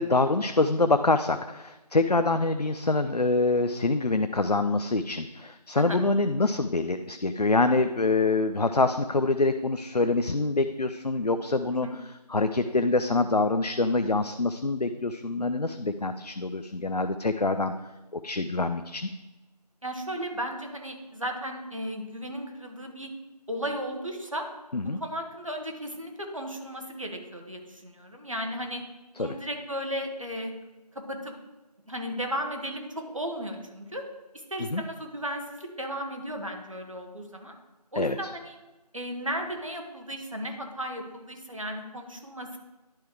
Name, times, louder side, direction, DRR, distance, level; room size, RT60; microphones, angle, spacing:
voice 1, 0.0-17.7 18.2-19.1 24.7-25.0 29.2-29.4 34.7-34.8 37.9-38.2, left 3 dB, 70° left, 9 dB, 0.6 m, -25 dB
voice 2, 19.8-23.1 23.5-24.4 25.0-28.8 29.1-30.5 30.9-31.3 31.9-34.1 34.5-37.5 37.9-38.6 38.9-42.6, equal, 50° right, 3 dB, 1.5 m, -35 dB
10.5 x 4.7 x 4.7 m, 1.1 s
figure-of-eight pair, 175°, 21 cm